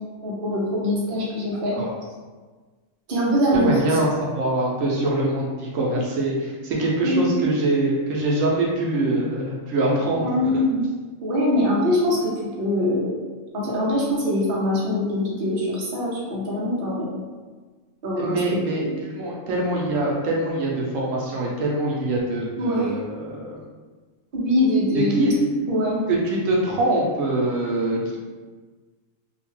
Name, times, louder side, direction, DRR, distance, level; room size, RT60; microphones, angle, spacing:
voice 1, 0.2-1.8 3.1-4.0 7.0-7.3 10.2-10.9 11.2-13.2 13.5-17.1 18.0-18.6 22.6-22.9 24.3-25.2 25.7-26.0, left 1 dB, 50° right, -5 dB, 0.8 m, -23 dB
voice 2, 1.5-1.9 3.5-10.3 10.5-10.6 18.2-23.6 24.9-25.3 26.1-28.2, right 2 dB, 80° right, -3 dB, 0.9 m, -24 dB
2.7 x 2.2 x 3.0 m, 1.4 s
omnidirectional pair, 1.3 m